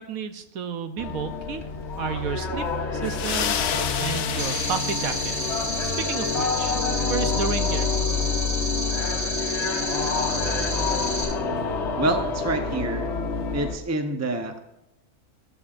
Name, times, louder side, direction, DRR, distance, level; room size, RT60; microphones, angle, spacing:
voice 1, 0.0-1.6 2.0-6.8 7.1-7.9, right 7 dB, 75° right, 8 dB, 1.2 m, -32 dB
sound 1, 1.0-13.8, left 4 dB, 55° left, 1.2 m, -28 dB
sound 2, 3.0-6.1, left 9 dB, 75° left, 1.1 m, -30 dB
sound 3, 4.4-11.2, left 1 dB, 50° right, 5.1 m, -30 dB
voice 2, 12.0-13.1 13.5-14.6, right 2 dB, 15° right, 5 dB, 0.7 m, -27 dB
13.5 x 13.0 x 2.5 m, 0.83 s
omnidirectional pair, 1.5 m